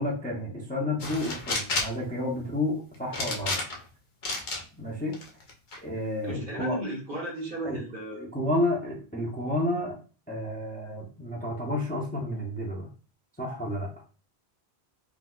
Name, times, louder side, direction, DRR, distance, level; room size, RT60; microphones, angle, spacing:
voice 1, 0.0-3.6 4.8-5.2 5.8-6.8 7.7-7.8 8.2-10.0 10.3-12.9 13.4-13.9, left 1 dB, 10° left, -3 dB, 0.5 m, -30 dB
sound 1, 1.0-2.0 3.1-3.9 4.2-4.6 5.1-5.8, left 2 dB, 50° left, 0.7 m, -31 dB
voice 2, 6.2-8.3, equal, 55° right, -3 dB, 1.2 m, -35 dB
3.9 x 2.3 x 2.3 m, 0.38 s
omnidirectional pair, 1.1 m